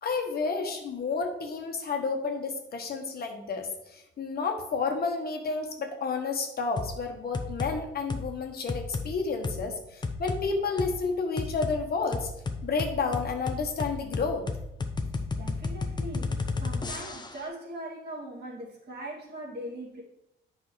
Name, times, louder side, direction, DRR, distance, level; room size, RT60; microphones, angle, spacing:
voice 1, 0.0-12.3 12.6-14.4, left 4 dB, 50° left, 3 dB, 1.2 m, -31 dB
sound 1, 6.8-7.0 7.3-7.7 8.1-8.3 8.7-9.1 9.4-9.6 10.0-10.4 10.8-10.9 11.4-11.8 12.1-17.4, left 3 dB, 20° left, 0.7 m, -32 dB
voice 2, 15.4-20.0, right 1 dB, 55° right, -4 dB, 2.4 m, -40 dB
8.2 x 5.5 x 3.2 m, 0.83 s
cardioid pair, 90°, 20 cm